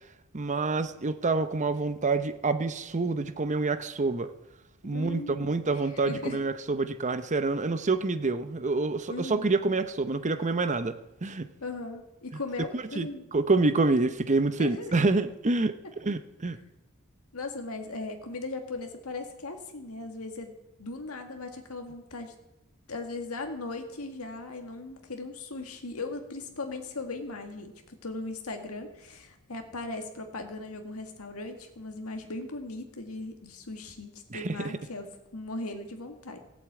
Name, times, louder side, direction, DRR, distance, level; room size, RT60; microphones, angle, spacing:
voice 1, 0.3-4.3 4.8-11.5 12.7-15.8 16.0-16.6 34.3-34.7, right 3 dB, 35° right, 11 dB, 0.8 m, -27 dB
voice 2, 4.9-6.4 9.1-9.5 11.6-13.3 14.6-14.9 17.3-20.5 20.8-22.3 22.9-36.4, left 2 dB, 70° left, 5 dB, 2.0 m, -38 dB
15.0 x 8.5 x 8.1 m, 0.91 s
head